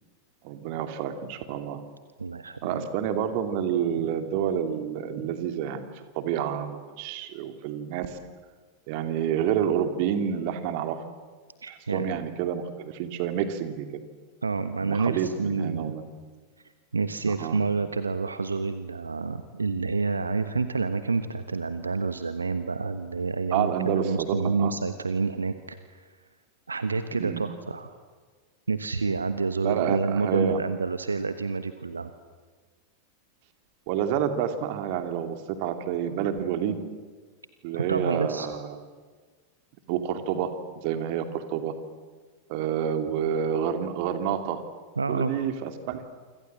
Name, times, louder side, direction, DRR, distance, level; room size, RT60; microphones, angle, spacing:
voice 1, 0.4-1.8 2.6-8.2 8.9-11.1 11.7-13.9 14.8-16.0 17.4-17.6 23.5-24.7 27.1-27.4 29.6-30.6 33.9-36.8 37.6-38.8 39.9-41.7 42.5-44.6 45.1-46.0, right 8 dB, 45° right, 7 dB, 2.7 m, -29 dB
voice 2, 2.2-2.9 11.6-12.1 14.4-15.9 16.9-26.1 26.7-28.0 28.7-32.1 37.7-38.5 45.0-45.3, right 4 dB, 75° right, 10 dB, 1.2 m, -28 dB
28.0 x 25.5 x 7.7 m, 1.5 s
figure-of-eight pair, 90°, 0 cm